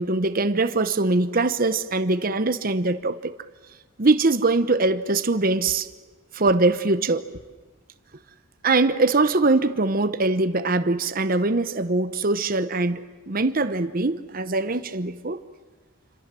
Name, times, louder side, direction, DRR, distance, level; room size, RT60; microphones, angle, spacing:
voice 1, 0.0-3.3 4.0-5.9 6.3-7.2 8.6-15.4, right 3 dB, 45° right, 0.9 m, -22 dB
27.0 x 26.0 x 7.6 m
head